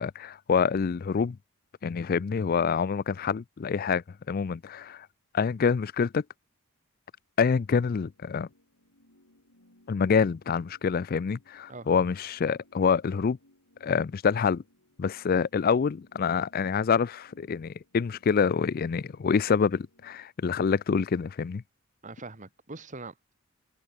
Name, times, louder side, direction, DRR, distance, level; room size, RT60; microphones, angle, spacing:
voice 1, 0.0-1.4 1.8-5.1 5.3-6.2 7.4-8.5 9.9-13.4 13.8-14.6 15.0-21.6, left 6 dB, 40° left, 0.4 m, -26 dB
sound 1, 7.8-20.2, left 1 dB, 85° left, 7.3 m, -63 dB
voice 2, 22.0-23.3, right 3 dB, 35° right, 1.5 m, -42 dB
head